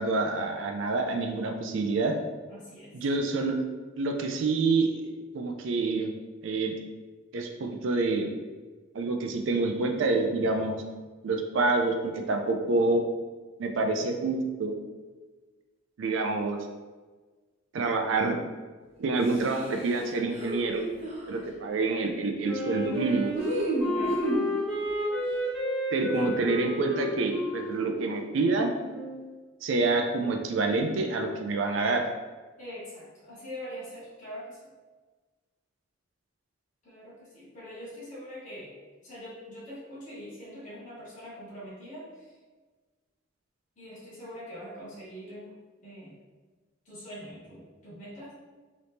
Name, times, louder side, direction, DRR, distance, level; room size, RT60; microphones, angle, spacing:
voice 1, 0.0-2.1 2.9-3.6 4.0-5.0 5.3-6.1 6.4-6.8 7.3-8.3 8.9-10.8 11.2-13.0 13.6-14.7 16.0-16.6 17.7-18.3 19.0-20.8 21.3-23.3 25.9-28.7 29.6-32.0, right 3 dB, 75° right, 4 dB, 0.4 m, -27 dB
voice 2, 2.5-2.9 23.9-24.2 26.1-26.3 32.6-34.7 36.8-38.7 39.0-42.4 43.8-45.5 45.8-46.2 46.8-48.3, equal, 40° left, -9 dB, 1.2 m, -43 dB
sound 1, 19.2-21.4 23.3-24.5, right 1 dB, 30° right, 0.7 m, -31 dB
Wind instrument woodwind instrument, 22.4-29.2, equal, 5° left, 1.3 m, -32 dB
4.0 x 3.0 x 3.3 m, 1.4 s
head